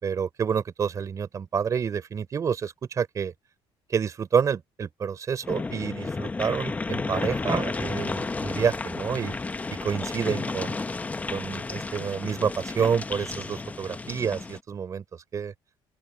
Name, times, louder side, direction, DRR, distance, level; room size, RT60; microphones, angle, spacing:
voice 1, 0.0-3.3 3.9-9.4 9.7-10.8 11.3-15.5, right 7 dB, 35° right, 3.9 m, -28 dB
sound 1, 5.4-14.6, left 3 dB, 15° left, 0.8 m, -32 dB
open air
cardioid pair, 140°, 10 cm